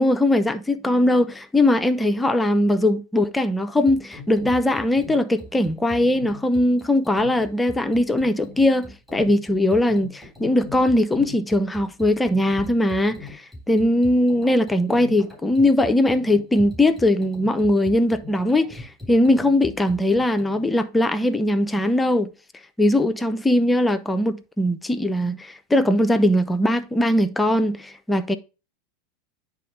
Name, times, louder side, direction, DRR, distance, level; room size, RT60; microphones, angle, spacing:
voice 1, 0.0-22.3 22.8-28.4, left 1 dB, 10° left, 0.5 m, -20 dB
sound 1, 3.9-20.6, left 2 dB, 10° right, 3.7 m, -41 dB
9.3 x 3.6 x 4.8 m
figure-of-eight pair, 85°, 0 cm